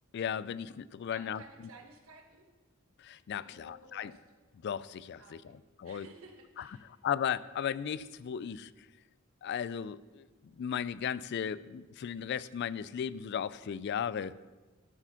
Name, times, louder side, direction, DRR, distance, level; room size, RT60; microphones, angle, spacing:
voice 1, 0.1-1.7 3.0-4.1 4.6-6.1 6.6-8.7 9.4-14.3, left 8 dB, 55° left, 18 dB, 0.3 m, -36 dB
voice 2, 1.1-2.5 3.4-4.2 5.2-5.4 5.8-6.9, right 3 dB, 85° right, 3 dB, 1.3 m, -54 dB
12.5 x 4.9 x 5.7 m, 1.2 s
head